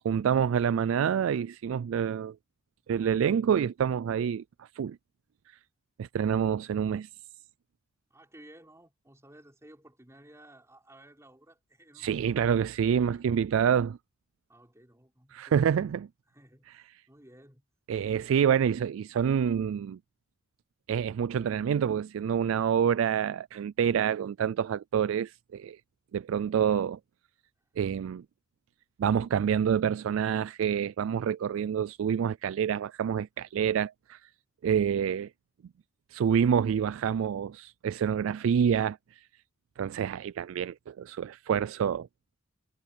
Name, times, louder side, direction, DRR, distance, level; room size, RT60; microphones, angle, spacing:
voice 1, 0.0-2.4 2.9-5.0 6.0-7.1 12.0-14.0 15.3-16.1 17.9-20.0 20.9-25.8 26.1-27.0 27.8-28.2 29.0-34.2 34.6-35.3 36.1-39.2 39.8-42.1, right 8 dB, 80° right, 0.3 m, -27 dB
voice 2, 8.1-12.5 12.8-13.5 14.5-16.0 16.3-17.6 27.6-27.7, right 1 dB, 15° right, 3.8 m, -56 dB
head